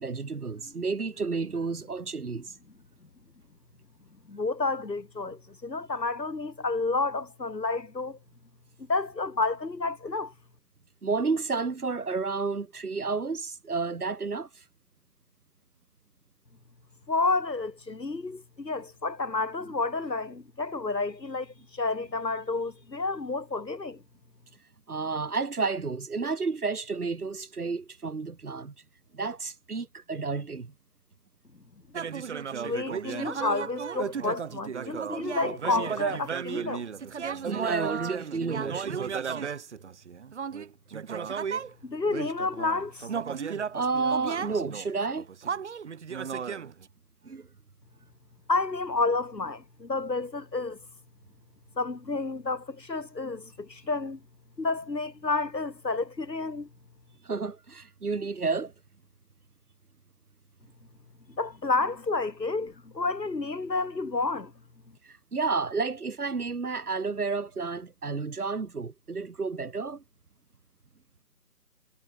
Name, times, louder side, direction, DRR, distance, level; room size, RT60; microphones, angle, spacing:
voice 1, 0.0-2.5 11.0-14.6 24.9-28.7 29.1-30.7 37.5-39.1 43.7-45.3 47.2-47.5 57.2-58.7 65.0-70.0, right 4 dB, 65° right, 5.8 m, -31 dB
voice 2, 4.3-8.2 8.9-10.3 17.1-24.0 32.6-36.8 41.8-43.1 48.5-50.8 51.8-54.2 54.6-56.7 61.4-64.5, left 3 dB, 85° left, 2.3 m, -30 dB
sound 1, 31.9-41.7 42.1-46.9, right 6 dB, 45° right, 1.7 m, -34 dB
figure-of-eight pair, 150°, 49 cm